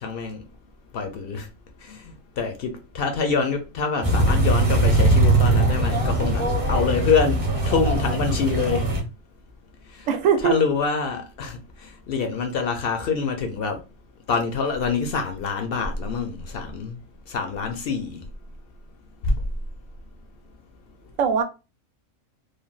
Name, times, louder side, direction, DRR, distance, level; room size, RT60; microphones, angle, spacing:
voice 1, 0.0-0.4 0.9-1.5 1.8-2.0 2.4-8.9 10.0-10.1 10.4-11.6 12.1-13.8 14.3-17.0 17.3-18.2 19.3-19.4, left 5 dB, 65° left, 0.6 m, -25 dB
sound 1, 4.0-9.0, right 2 dB, 35° right, 0.6 m, -20 dB
voice 2, 10.1-10.6 21.2-21.4, right 7 dB, 80° right, 1.0 m, -20 dB
3.3 x 2.2 x 2.3 m
omnidirectional pair, 1.4 m